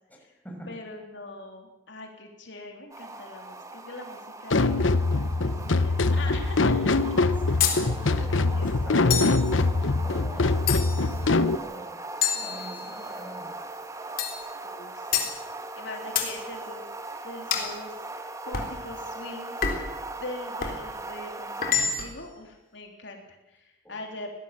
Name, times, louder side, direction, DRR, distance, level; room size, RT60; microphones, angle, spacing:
voice 1, 0.7-4.8 5.4-7.0 7.7-7.9 8.3-8.9 14.6-15.3 15.8-16.9 17.2-19.5 20.2-24.3, left 2 dB, 65° left, 2 dB, 3.5 m, -42 dB
sound 1, 2.9-21.7, right 2 dB, 15° right, 1.5 m, -39 dB
sound 2, 4.5-11.6, left 3 dB, 85° left, 1.0 m, -23 dB
voice 2, 7.5-9.6 10.0-10.6 11.4-12.0 12.3-13.5 23.8-24.1, equal, 10° left, 0 dB, 6.3 m, -43 dB
sound 3, 7.6-7.9 9.1-9.5 10.7-11.1 12.2-13.1 14.2-14.5 15.1-15.4 16.2-16.4 17.5-17.8 18.5-18.8 19.6-20.0 20.6-20.8 21.6-22.2, left 7 dB, 50° left, 3.6 m, -27 dB
23.5 x 18.0 x 7.5 m, 0.95 s
head